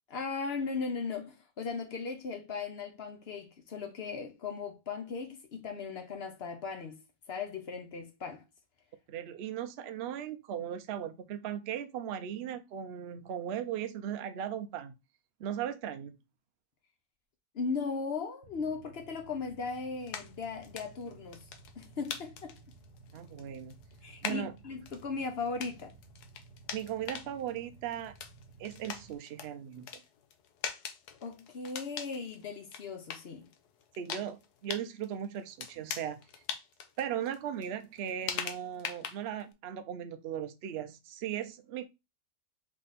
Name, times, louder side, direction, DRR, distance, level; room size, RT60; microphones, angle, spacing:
voice 1, 0.1-7.0 7.3-8.4 17.5-21.5 21.8-22.6 24.0-25.9 31.2-33.5, left 4 dB, 55° left, 0.7 m, -37 dB
voice 2, 9.1-14.9 15.4-16.2 23.1-23.8 24.2-24.6 26.7-28.1 28.6-29.9 34.0-36.2 37.0-41.9, right 9 dB, 70° right, 0.6 m, -37 dB
Motorcycle / Idling, 18.4-29.1, right 4 dB, 45° right, 1.2 m, -56 dB
sound 1, 20.0-39.5, left 8 dB, 75° left, 1.2 m, -43 dB
3.6 x 3.4 x 4.0 m
omnidirectional pair, 1.8 m